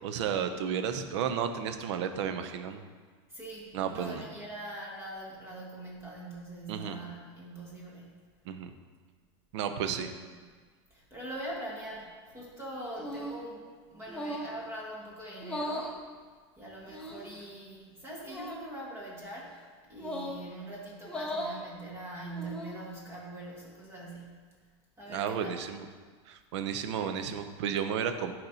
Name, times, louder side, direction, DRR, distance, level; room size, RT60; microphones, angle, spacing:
voice 1, 0.0-2.8 3.7-4.2 6.7-7.0 8.5-8.7 9.5-10.1 25.1-25.8 26.3-28.3, right 8 dB, 75° right, 8 dB, 0.6 m, -32 dB
voice 2, 3.3-8.2 9.8-10.2 10.9-16.0 16.6-19.6 19.9-24.3 25.0-25.5 27.0-27.4, right 1 dB, 15° right, -4 dB, 1.3 m, -43 dB
sound 1, 13.0-13.4 14.1-14.6 15.4-15.9 16.9-17.4 18.2-18.6 20.0-20.4 21.0-21.6 22.2-22.8, equal, 5° left, 0.6 m, -37 dB
10.5 x 4.2 x 2.7 m, 1.5 s
supercardioid pair, 150°, 15 cm